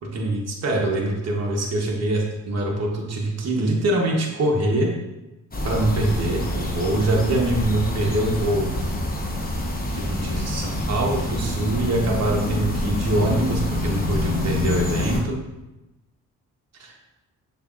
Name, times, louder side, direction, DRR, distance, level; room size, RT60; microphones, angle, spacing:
voice 1, 0.0-4.9 5.6-8.7 9.9-15.4 16.8-16.9, right 1 dB, 50° right, -1 dB, 1.0 m, -24 dB
sound 1, 5.5-15.2, left 1 dB, 25° left, 1.0 m, -26 dB
6.6 x 2.6 x 2.5 m, 1.0 s
supercardioid pair, 55°, 34 cm